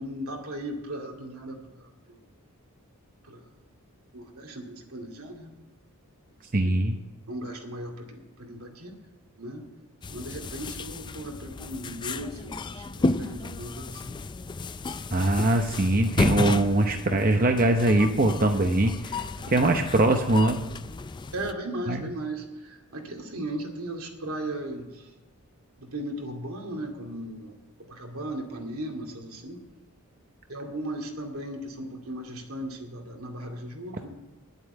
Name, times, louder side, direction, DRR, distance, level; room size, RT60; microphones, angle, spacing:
voice 1, 0.0-2.2 3.2-3.5 4.1-5.5 6.6-6.8 7.3-9.0 9.4-9.7 10.1-14.2 19.4-19.8 21.3-25.1 25.8-27.5 27.9-29.6 30.5-34.1, right 1 dB, 75° right, 1 dB, 2.3 m, -37 dB
voice 2, 6.5-7.0 15.1-20.6 21.9-22.0, right 2 dB, 40° right, 4 dB, 0.8 m, -22 dB
sound 1, 10.0-21.5, left 3 dB, 20° left, 0.3 m, -33 dB
10.5 x 8.2 x 8.9 m, 1.1 s
head